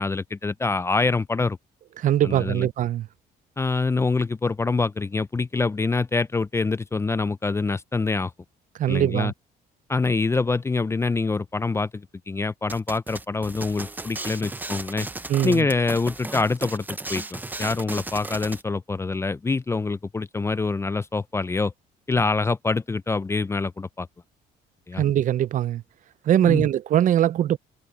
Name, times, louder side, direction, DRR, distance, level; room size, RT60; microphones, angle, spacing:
voice 1, 0.0-1.6 2.2-2.7 3.6-8.3 8.9-9.3 9.9-15.1 15.4-21.7 22.1-24.1 24.9-25.0 26.4-26.7, left 3 dB, 15° left, 0.4 m, -25 dB
voice 2, 2.0-3.1 8.8-9.3 15.3-15.7 25.0-25.8 26.3-27.6, right 11 dB, 50° right, 0.5 m, -21 dB
sound 1, 12.7-18.6, right 2 dB, 10° right, 0.8 m, -35 dB
cardioid pair, 110°, 17 cm